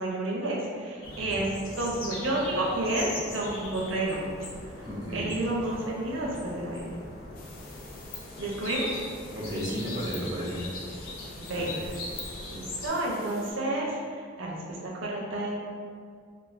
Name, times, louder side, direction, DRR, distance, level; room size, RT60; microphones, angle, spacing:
voice 1, 0.0-4.3 4.8-4.9 5.1-6.9 8.4-9.0 11.4-11.8 12.5-15.5, right 1 dB, 70° right, -3 dB, 0.6 m, -30 dB
sound 1, 1.0-12.9, left 1 dB, 90° left, 0.6 m, -40 dB
voice 2, 4.8-5.4 9.3-10.6 11.5-11.9, equal, 20° right, -7 dB, 0.5 m, -34 dB
sound 2, 7.3-13.5, left 4 dB, 45° left, 0.3 m, -47 dB
2.4 x 2.3 x 3.1 m, 2.2 s
head